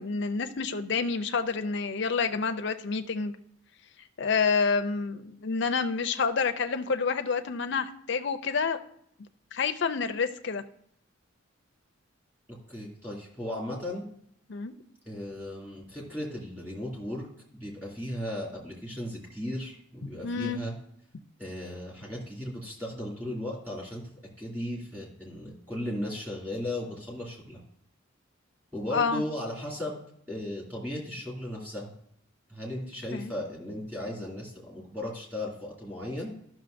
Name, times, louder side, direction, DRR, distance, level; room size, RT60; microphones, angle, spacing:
voice 1, 0.0-3.3 4.2-8.8 9.5-10.6 14.5-14.7 20.2-20.6 28.9-29.2 33.1-33.3, left 5 dB, 55° left, 8 dB, 0.5 m, -28 dB
voice 2, 12.5-14.1 15.1-17.3 17.5-20.7 21.4-27.6 28.7-30.0 30.3-31.9 32.5-36.3, left 1 dB, 10° right, -4 dB, 2.4 m, -36 dB
12.5 x 6.2 x 2.6 m, 0.68 s
head